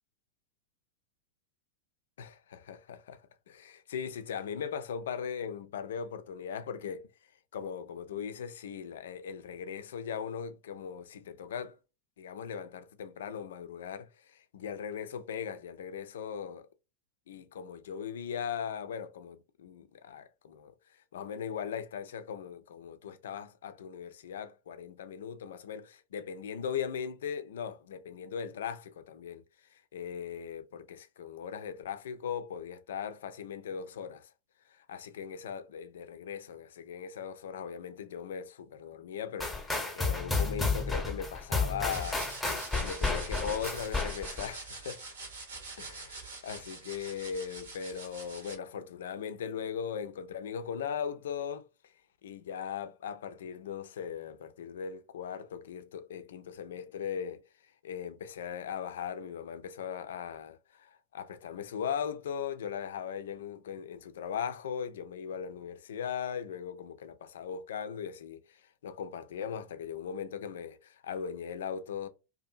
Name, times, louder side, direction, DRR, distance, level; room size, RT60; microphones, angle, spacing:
voice 1, 2.2-3.2 3.5-7.1 7.5-11.8 12.2-16.7 17.3-20.7 21.1-29.4 29.7-34.3 34.7-42.3 42.7-45.0 45.8-51.7 52.2-57.4 57.8-72.1, left 7 dB, 60° left, 0.3 m, -39 dB
sound 1, 39.4-44.5, left 3 dB, 5° left, 0.8 m, -32 dB
sound 2, 41.9-48.5, right 3 dB, 65° right, 0.9 m, -44 dB
2.6 x 2.4 x 2.5 m
figure-of-eight pair, 90°, 0 cm